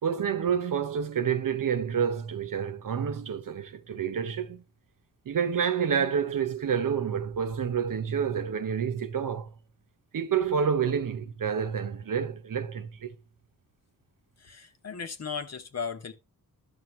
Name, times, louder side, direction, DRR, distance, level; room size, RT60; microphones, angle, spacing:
voice 1, 0.0-4.6 5.3-9.5 10.1-13.1, right 7 dB, 65° right, 1.0 m, -28 dB
voice 2, 14.4-16.1, left 6 dB, 45° left, 1.1 m, -36 dB
13.0 x 6.1 x 3.2 m
wide cardioid pair, 110°, 35 cm